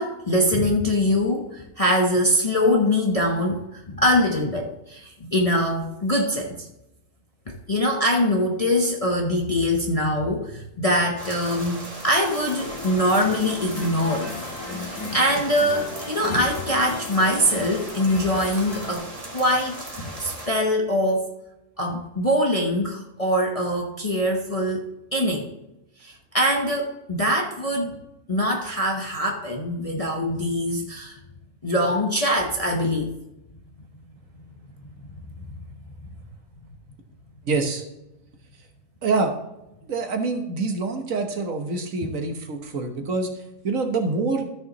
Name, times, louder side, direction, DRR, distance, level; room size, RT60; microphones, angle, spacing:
voice 1, 0.0-6.7 7.5-14.3 14.8-21.3 21.8-25.5 26.0-27.9 28.3-31.2 31.6-33.2, equal, 30° left, 1 dB, 0.7 m, -23 dB
sound 1, 11.2-20.5, right 1 dB, 25° right, 1.8 m, -38 dB
sound 2, 12.6-19.0, left 3 dB, 85° left, 2.0 m, -36 dB
voice 2, 37.5-37.8 39.0-39.4 39.9-43.3 43.6-44.5, right 3 dB, 60° right, 4 dB, 1.5 m, -26 dB
13.5 x 6.7 x 3.0 m, 0.90 s
omnidirectional pair, 1.6 m